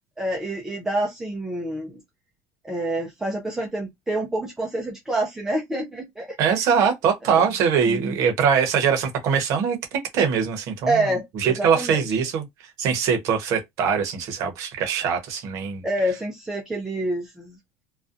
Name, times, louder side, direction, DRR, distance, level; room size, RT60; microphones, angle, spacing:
voice 1, 0.2-2.0 2.6-6.4 7.3-7.5 7.9-8.2 10.9-12.0 15.8-17.6, right 1 dB, 5° right, 0.4 m, -27 dB
voice 2, 6.4-11.0 11.3-12.5 12.8-15.8, right 7 dB, 50° right, 0.8 m, -22 dB
2.5 x 2.1 x 2.4 m
cardioid pair, 170°, 7 cm